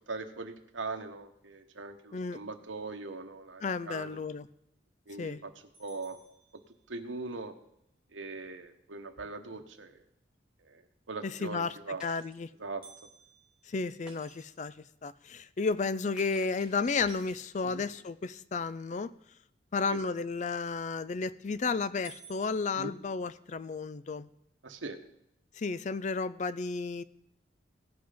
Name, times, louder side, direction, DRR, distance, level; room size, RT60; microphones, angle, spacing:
voice 1, 0.0-4.2 5.1-5.5 5.8-6.2 6.9-7.5 8.1-10.0 10.6-10.8 11.1-12.0 12.6-12.8 17.6-17.8 19.9-20.0 22.7-22.9 24.6-25.0, right 3 dB, 85° right, 7 dB, 1.1 m, -41 dB
voice 2, 3.6-4.5 5.2-5.4 11.2-11.8 12.0-12.5 13.7-14.7 15.0-19.1 19.7-24.3 25.6-27.0, left 4 dB, 40° left, 16 dB, 0.4 m, -32 dB
sound 1, 5.7-7.3 12.8-15.0 15.5-15.6 16.1-16.2 16.8-17.2 20.8-21.2 21.6-21.7 22.0-23.8, right 5 dB, 25° right, 1.6 m, -57 dB
Shatter, 12.0-12.4 14.1-14.6 16.2-17.9, right 2 dB, 5° right, 1.7 m, -54 dB
16.5 x 5.7 x 5.1 m, 0.77 s
head